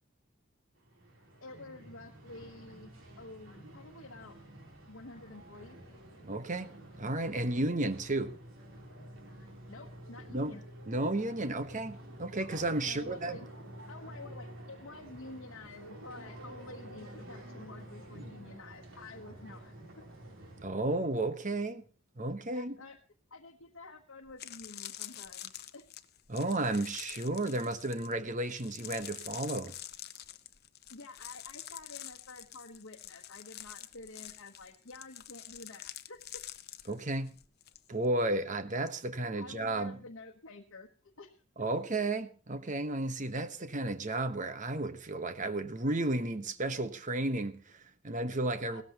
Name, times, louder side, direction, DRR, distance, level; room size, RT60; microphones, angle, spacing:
sound 1, 0.8-20.6, right 1 dB, 80° right, 3.5 m, -50 dB
voice 1, 1.4-4.4 4.9-5.8 9.7-10.6 12.8-13.5 13.9-20.0 22.5-23.0 23.3-25.9 30.9-36.4 39.4-41.7 48.7-48.8, left 3 dB, 75° left, 1.1 m, -49 dB
voice 2, 6.2-6.7 7.0-8.3 10.3-10.6 10.9-13.4 20.6-21.8 22.2-22.8 26.3-29.7 36.9-37.3 37.9-39.9 41.6-48.8, right 2 dB, 40° right, 1.1 m, -33 dB
sound 2, 23.8-23.9 24.3-37.8 38.0-38.4, left 13 dB, 55° left, 0.8 m, -47 dB
17.5 x 13.5 x 2.9 m
head